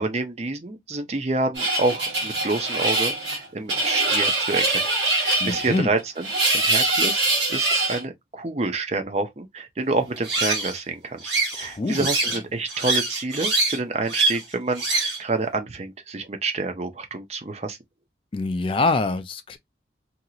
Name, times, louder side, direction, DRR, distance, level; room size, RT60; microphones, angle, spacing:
voice 1, 0.0-4.8 5.1-6.3 6.5-17.8, right 3 dB, 35° right, 0.6 m, -28 dB
sound 1, 1.6-8.0 10.2-10.8 11.2-12.4 12.7-13.8 14.1-14.4 14.8-15.2, right 2 dB, 85° right, 1.4 m, -23 dB
voice 2, 5.4-5.9 11.6-12.1 18.3-19.6, left 3 dB, 30° left, 0.3 m, -25 dB
2.8 x 2.8 x 2.3 m
head